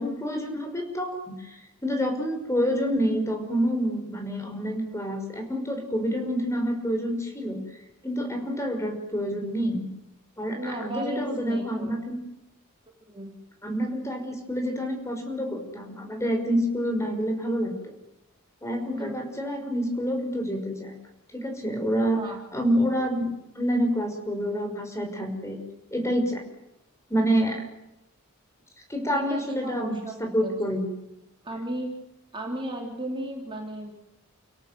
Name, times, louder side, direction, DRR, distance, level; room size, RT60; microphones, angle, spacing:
voice 1, 0.0-7.6 8.0-9.9 10.4-12.2 13.6-17.7 18.6-20.9 21.3-22.2 22.5-23.3 23.5-25.6 25.9-26.4 27.1-27.6 28.9-30.9, equal, 15° left, 3 dB, 5.9 m, -27 dB
voice 2, 10.5-11.9 13.1-13.3 18.9-19.1 22.2-22.4 27.4-27.5 29.1-30.5 31.4-31.9 32.3-33.9, right 1 dB, 25° right, 0 dB, 3.8 m, -34 dB
30.0 x 17.5 x 7.8 m, 0.90 s
head